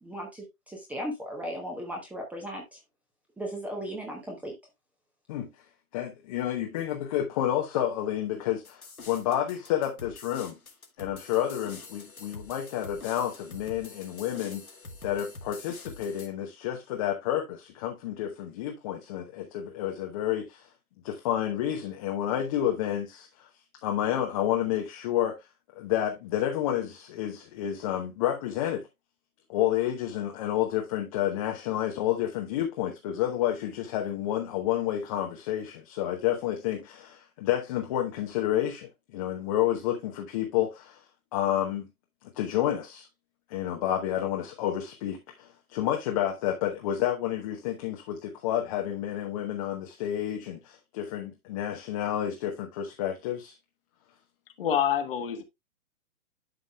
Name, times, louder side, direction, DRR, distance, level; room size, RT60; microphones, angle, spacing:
voice 1, 0.0-2.8 3.4-4.5, equal, 5° right, 1.0 m, -36 dB
voice 2, 5.9-10.6 11.0-14.6 15.0-20.7 21.0-23.5 23.8-25.4 25.7-28.8 29.5-41.0 41.3-41.9 42.3-43.1 43.5-53.5, left 11 dB, 25° left, 1.0 m, -30 dB
sound 1, 8.7-16.3, left 3 dB, 80° left, 2.3 m, -46 dB
voice 3, 54.6-55.4, left 9 dB, 40° left, 1.4 m, -26 dB
11.5 x 5.2 x 2.3 m
figure-of-eight pair, 130°, 42 cm